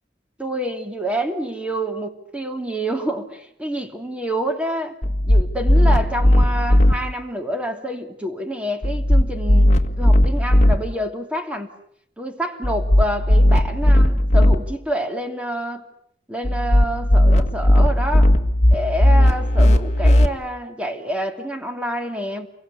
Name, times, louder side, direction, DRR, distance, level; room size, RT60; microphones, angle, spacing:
voice 1, 0.4-4.9 5.2-11.7 12.2-15.9 16.3-18.3 18.7-22.5, right 1 dB, 5° right, 5 dB, 2.8 m, -27 dB
sound 1, 5.0-6.9 8.8-10.7 12.6-14.6 16.4-20.3, left 1 dB, 45° left, 1.6 m, -16 dB
30.0 x 23.5 x 8.5 m, 0.70 s
head